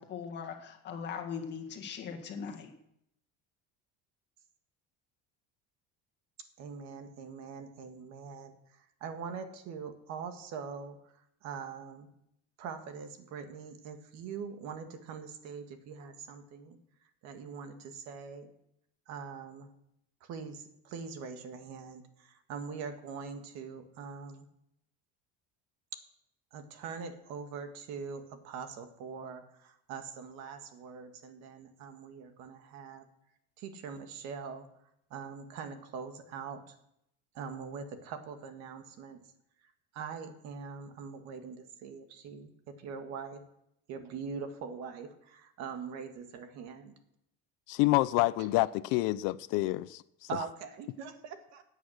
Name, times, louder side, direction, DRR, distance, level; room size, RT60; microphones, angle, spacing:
voice 1, 0.0-2.7, left 6 dB, 35° left, 1.9 m, -40 dB
voice 2, 6.6-11.1 11.4-12.1 12.6-16.8 17.2-18.5 19.1-19.7 20.2-24.4 26.5-33.1 33.6-34.7 35.1-36.7 37.3-39.2 39.9-43.4 43.9-46.9 48.4-48.5 50.3-51.6, right 6 dB, 55° right, 1.7 m, -43 dB
voice 3, 47.7-50.3, left 19 dB, 70° left, 0.6 m, -28 dB
17.5 x 8.5 x 6.5 m
cardioid pair, 175°, 32 cm